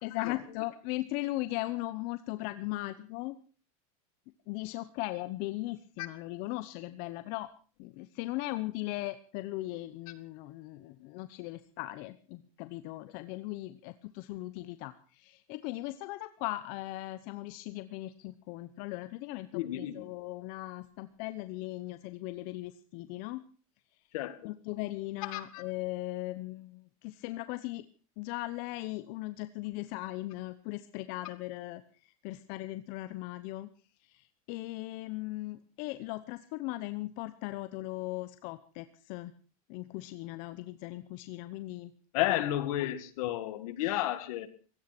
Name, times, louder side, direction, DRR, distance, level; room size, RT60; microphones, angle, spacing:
voice 1, 0.0-3.4 4.5-7.5 7.8-23.4 24.4-27.8 28.2-33.7 34.0-39.3 39.7-41.9 42.3-42.4 43.8-44.0, left 18 dB, 55° left, 12 dB, 0.9 m, -38 dB
voice 2, 19.5-20.1 24.1-24.5 25.3-25.6 42.1-44.5, left 14 dB, 75° left, 12 dB, 2.1 m, -32 dB
17.0 x 14.0 x 6.0 m, 0.39 s
supercardioid pair, 150°, 18 cm